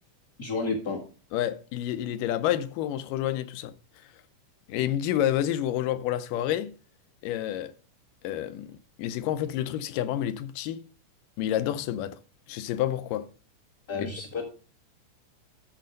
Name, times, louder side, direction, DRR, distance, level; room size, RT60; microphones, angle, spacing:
voice 1, 0.4-1.0 13.9-14.4, left 3 dB, 35° left, 1.6 m, -31 dB
voice 2, 1.3-3.7 4.7-6.7 7.2-7.7 8.2-10.8 11.4-12.2 12.5-13.3 14.0-14.1, left 12 dB, 80° left, 2.3 m, -29 dB
13.5 x 4.6 x 5.2 m
omnidirectional pair, 3.9 m